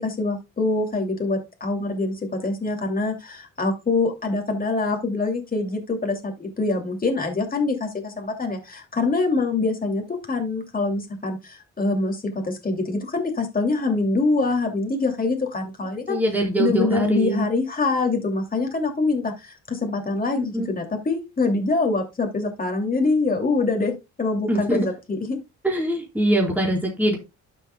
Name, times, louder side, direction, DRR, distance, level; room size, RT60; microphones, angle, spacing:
voice 1, 0.0-16.2 16.6-23.9 24.2-25.4, left 3 dB, 30° left, 3 dB, 2.7 m, -24 dB
voice 2, 16.1-17.5 20.4-20.7 24.5-24.8 25.6-27.2, right 1 dB, 5° right, -2 dB, 4.4 m, -23 dB
12.0 x 7.1 x 2.3 m, 0.24 s
cardioid pair, 100°, 31 cm